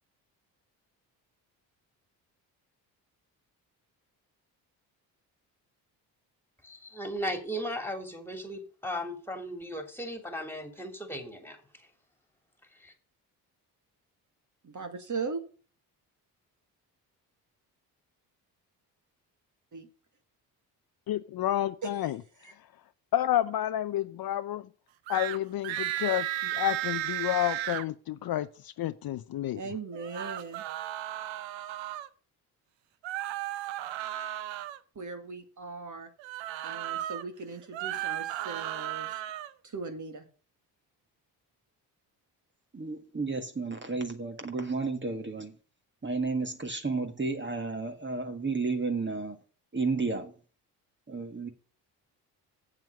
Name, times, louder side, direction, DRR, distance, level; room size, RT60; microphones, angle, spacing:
voice 1, 6.6-11.8 12.8-12.9, equal, 5° left, 2.9 m, -37 dB
voice 2, 14.6-15.4 19.7-19.9 21.8-21.9 22.4-22.5 29.6-30.6 35.0-36.1 36.6-39.2 39.6-40.3, right 4 dB, 40° right, 2.0 m, -38 dB
voice 3, 21.1-22.2 23.1-24.7 25.1-29.6, left 12 dB, 50° left, 0.7 m, -30 dB
sound 1, 25.1-25.4 25.6-27.8 29.9-32.1 33.0-34.8 36.2-37.2 37.6-39.5, right 13 dB, 65° right, 0.8 m, -34 dB
voice 4, 42.7-45.6 46.0-49.4 49.7-50.4 51.1-51.5, right 4 dB, 25° right, 1.7 m, -32 dB
7.6 x 7.4 x 6.4 m
hypercardioid pair, 45°, 48 cm